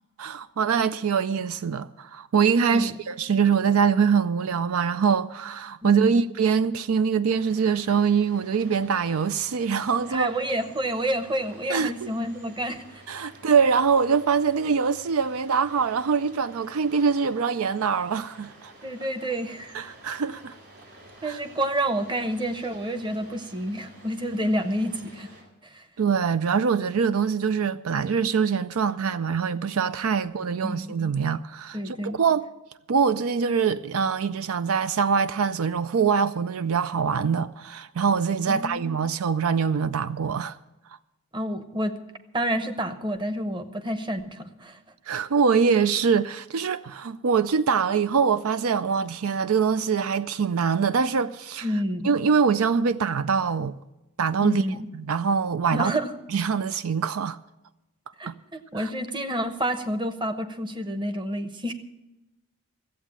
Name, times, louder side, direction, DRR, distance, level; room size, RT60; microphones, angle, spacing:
voice 1, 0.2-10.3 11.7-12.1 13.1-18.7 19.7-20.6 21.2-21.4 26.0-32.5 32.9-40.6 45.1-51.7 52.0-53.7 54.2-54.6 54.9-55.9 56.3-57.4 58.3-58.4 58.8-58.9, right 6 dB, 75° right, 0.5 m, -24 dB
voice 2, 5.8-6.2 10.1-12.9 13.2-13.3 18.8-19.8 21.2-25.3 25.6-25.9 30.6-30.9 31.7-32.2 38.5-39.0 41.3-42.0 42.3-44.8 51.6-52.1 54.4-54.9 55.7-56.1 58.2-61.7, right 1 dB, 20° right, 0.9 m, -29 dB
sound 1, 7.3-25.4, right 1 dB, 50° right, 4.3 m, -50 dB
14.5 x 8.2 x 8.7 m
head